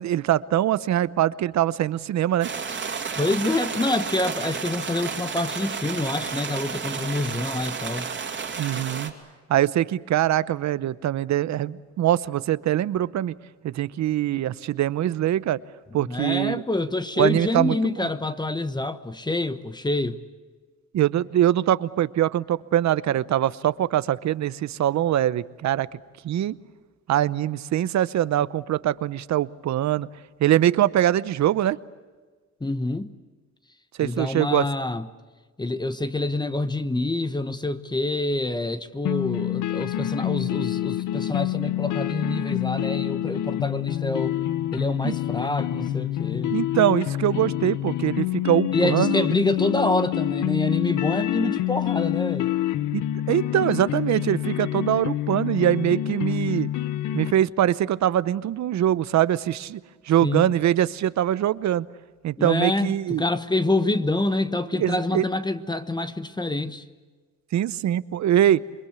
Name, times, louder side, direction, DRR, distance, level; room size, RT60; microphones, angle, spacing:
voice 1, 0.0-2.5 8.6-9.1 9.5-13.3 13.6-15.6 15.9-16.6 17.2-18.1 20.9-25.9 26.2-26.5 27.1-30.1 30.4-31.8 34.0-34.6 45.0-45.1 46.5-49.3 52.9-56.7 57.1-59.8 60.1-61.9 62.2-63.2 64.8-65.3 67.5-68.6, right 12 dB, 65° right, 0.8 m, -23 dB
sound 1, 2.4-9.1, right 5 dB, 40° right, 2.8 m, -31 dB
voice 2, 3.2-8.1 15.9-20.2 32.6-33.1 34.0-35.1 35.6-44.4 44.7-46.5 48.7-52.5 60.2-60.5 62.4-66.8, left 2 dB, 15° left, 1.1 m, -26 dB
sound 2, 39.1-57.3, left 13 dB, 80° left, 1.0 m, -27 dB
27.5 x 22.5 x 8.3 m
cardioid pair, 90°, 30 cm